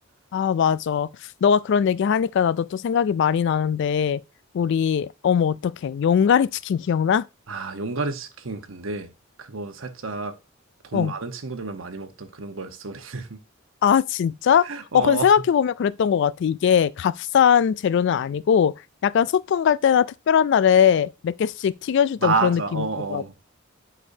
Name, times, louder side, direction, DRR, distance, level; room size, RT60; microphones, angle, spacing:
voice 1, 0.3-1.1 1.4-4.2 4.5-7.2 10.9-11.1 13.8-14.7 14.9-18.7 19.0-22.8 23.1-23.3, left 8 dB, 60° left, 0.3 m, -20 dB
voice 2, 7.5-9.1 9.4-10.3 10.8-13.4 14.6-15.3 22.2-23.3, right 4 dB, 80° right, 1.0 m, -29 dB
8.3 x 5.3 x 2.7 m
head